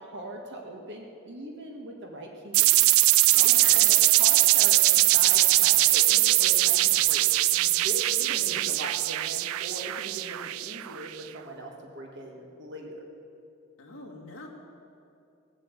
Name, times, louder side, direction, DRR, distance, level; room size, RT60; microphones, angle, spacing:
voice 1, 0.0-2.7 3.3-13.0, right 1 dB, 55° right, 1 dB, 1.7 m, -40 dB
sound 1, 2.5-11.1, right 17 dB, 75° right, 0.3 m, -21 dB
voice 2, 3.3-3.9 8.1-8.6 13.8-14.5, left 2 dB, 65° left, 0 dB, 2.2 m, -44 dB
18.5 x 7.7 x 8.3 m, 2.7 s
head